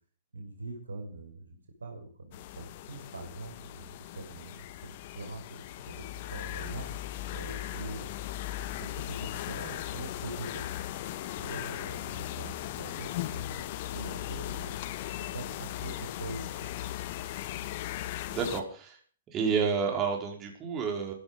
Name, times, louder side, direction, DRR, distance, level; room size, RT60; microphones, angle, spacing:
voice 1, 0.3-6.9 7.3-8.1 8.6-10.7 11.3-14.7 15.2-16.7, right 2 dB, 75° right, 3 dB, 5.7 m, -43 dB
sound 1, 2.3-18.6, left 14 dB, 45° left, 1.4 m, -38 dB
voice 2, 18.3-19.0 19.3-21.1, right 5 dB, 25° right, 1 dB, 5.1 m, -30 dB
16.0 x 14.0 x 5.4 m, 0.40 s
figure-of-eight pair, 105°, 0 cm